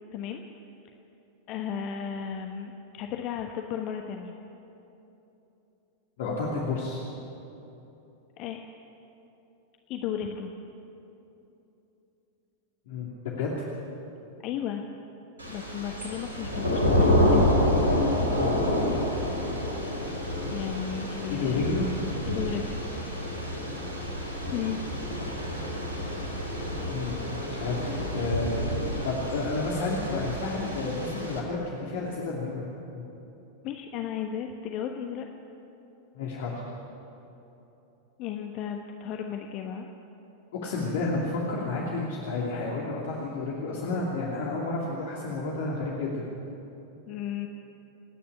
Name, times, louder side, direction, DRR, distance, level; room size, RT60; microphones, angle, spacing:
voice 1, 0.1-0.4 1.5-4.3 8.4-8.6 9.9-10.5 14.4-14.8 15.5-17.5 20.5-21.8 22.3-22.8 24.5-24.8 33.6-35.3 38.2-39.9 47.1-47.5, left 8 dB, 40° left, 3 dB, 1.2 m, -34 dB
voice 2, 6.2-7.0 12.9-13.5 18.3-18.5 21.3-21.9 23.6-23.7 26.8-27.2 27.5-28.6 29.0-32.6 32.9-33.0 36.1-36.5 40.5-46.2, left 3 dB, 55° left, -3 dB, 2.7 m, -31 dB
Thunder / Rain, 15.4-31.4, left 1 dB, 75° right, 4.2 m, -28 dB
27.5 x 10.0 x 9.8 m, 3.0 s
figure-of-eight pair, 90°, 0 cm